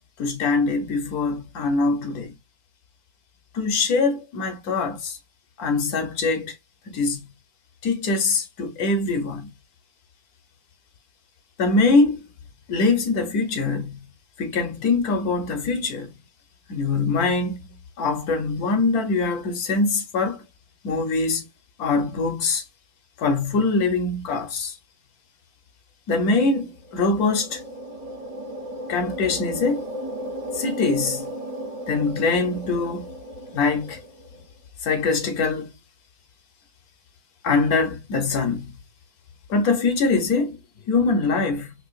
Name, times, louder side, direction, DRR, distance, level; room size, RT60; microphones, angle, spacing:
voice 1, 0.2-2.3 3.5-5.2 5.6-6.6 6.9-7.2 7.8-9.5 11.6-12.3 12.7-14.0 14.4-16.1 16.7-17.6 18.0-20.4 20.8-21.4 21.8-22.6 23.2-24.8 26.1-27.6 28.9-29.9 30.5-31.3 31.9-33.1 33.5-34.0 34.8-35.7 37.4-38.8 39.5-40.6 40.9-41.7, left 3 dB, 80° left, 1.3 m, -23 dB
sound 1, 26.7-34.4, equal, 40° right, 0.5 m, -35 dB
4.7 x 2.3 x 2.4 m
omnidirectional pair, 1.6 m